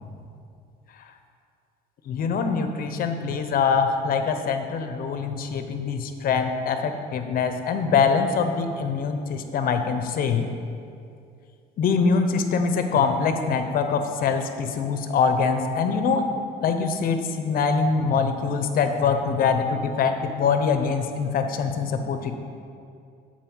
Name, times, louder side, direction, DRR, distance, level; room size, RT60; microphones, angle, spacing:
voice 1, 2.1-10.5 11.8-16.2 16.6-22.3, left 5 dB, 60° left, 7 dB, 0.8 m, -24 dB
12.0 x 4.3 x 6.1 m, 2.4 s
cardioid pair, 110°, 17 cm